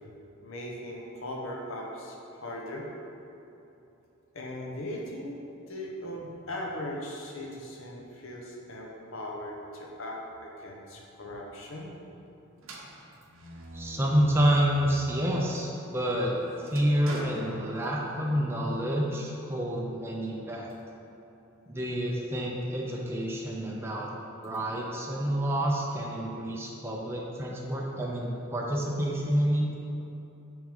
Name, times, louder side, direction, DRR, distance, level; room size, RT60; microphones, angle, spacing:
voice 1, 0.4-2.9 4.3-5.4 5.7-11.9, left 1 dB, 60° left, -1 dB, 0.9 m, -39 dB
sound 1, 12.6-15.0 15.5-18.3, right 1 dB, 65° right, 0.8 m, -45 dB
voice 2, 13.7-16.3 16.7-20.7 21.7-24.1 24.4-29.7, equal, 10° right, -3 dB, 0.5 m, -28 dB
6.0 x 3.6 x 5.3 m, 2.9 s
head